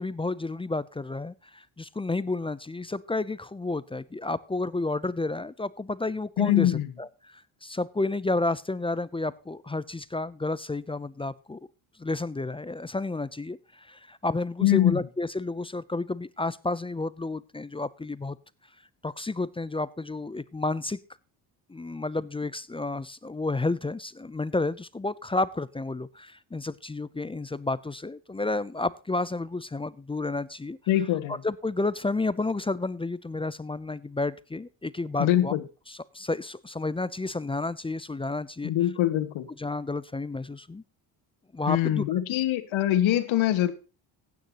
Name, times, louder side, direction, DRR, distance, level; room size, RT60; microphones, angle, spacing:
voice 1, 0.0-11.6 12.0-18.4 19.0-21.0 21.7-30.8 31.3-35.6 35.9-38.7 39.6-40.8 41.5-42.0, left 2 dB, 10° left, 0.5 m, -31 dB
voice 2, 6.4-6.9 14.6-15.0 30.9-31.4 35.2-35.6 38.6-39.5 41.7-43.7, left 13 dB, 80° left, 1.8 m, -23 dB
15.5 x 9.5 x 2.9 m
cardioid pair, 110°, 47 cm